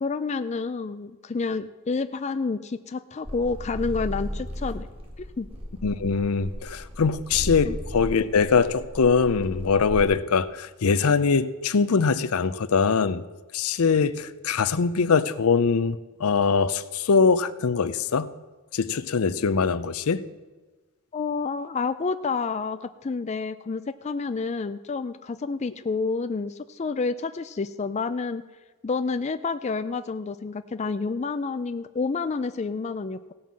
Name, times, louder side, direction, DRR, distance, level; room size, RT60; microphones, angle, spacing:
voice 1, 0.0-4.9 5.4-5.5 7.6-7.8 21.1-28.4 28.8-33.3, left 4 dB, 30° left, 10 dB, 0.4 m, -29 dB
sound 1, 3.2-10.0, equal, 25° right, 2.0 m, -35 dB
voice 2, 5.8-13.2 13.5-18.3 18.7-20.2, left 5 dB, 80° left, 14 dB, 0.6 m, -22 dB
16.5 x 5.5 x 7.5 m, 1.2 s
head